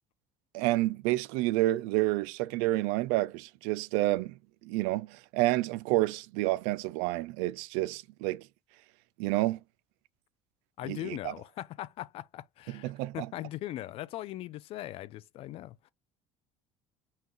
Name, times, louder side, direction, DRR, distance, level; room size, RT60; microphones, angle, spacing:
voice 1, 0.5-8.5 9.2-9.6 10.8-11.3 12.7-13.3, right 18 dB, 85° right, 0.4 m, -29 dB
voice 2, 10.8-15.9, left 14 dB, 55° left, 0.4 m, -40 dB
5.6 x 2.3 x 3.1 m
supercardioid pair, 110°, 12 cm